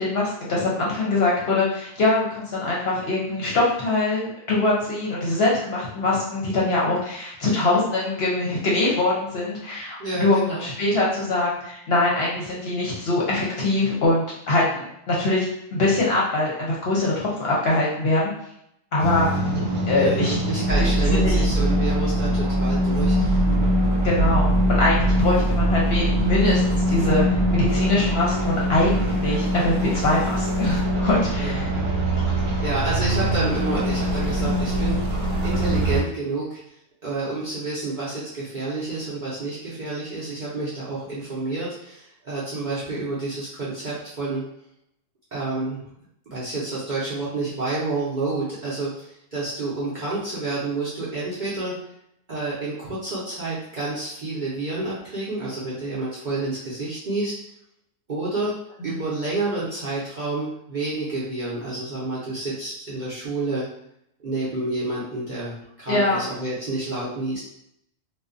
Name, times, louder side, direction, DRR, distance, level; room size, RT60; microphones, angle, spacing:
voice 1, 0.0-15.5 15.7-18.3 18.9-19.3 19.9-20.4 20.8-21.4 24.0-31.7 58.8-58.9 65.9-66.2, left 2 dB, 60° left, -4 dB, 0.8 m, -23 dB
voice 2, 10.0-10.7 19.9-23.4 31.4-31.9 32.6-35.0 35.4-36.6 37.0-44.4 45.3-45.8 46.3-48.9 49.3-51.7 52.3-57.3 58.1-58.5 58.8-63.7 64.2-67.4, right 2 dB, 50° right, -9 dB, 0.6 m, -29 dB
sound 1, 19.0-36.0, equal, 80° right, 1.1 m, -22 dB
2.5 x 2.2 x 2.4 m, 0.75 s
omnidirectional pair, 1.4 m